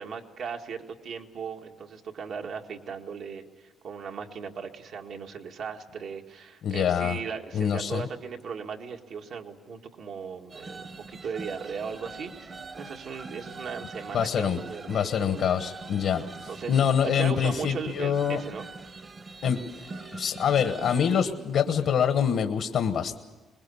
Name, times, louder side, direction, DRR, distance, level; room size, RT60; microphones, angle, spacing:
voice 1, 0.0-15.5 16.5-18.7, right 6 dB, 70° right, 3 dB, 1.9 m, -37 dB
voice 2, 6.6-7.2 7.5-8.1 14.1-14.6 14.9-16.2 16.7-18.4 19.4-19.6 20.1-23.2, left 8 dB, 70° left, 8 dB, 1.3 m, -25 dB
sound 1, 10.5-21.3, right 3 dB, 40° right, 1.3 m, -43 dB
23.5 x 21.0 x 7.1 m, 1.3 s
cardioid pair, 90°, 0 cm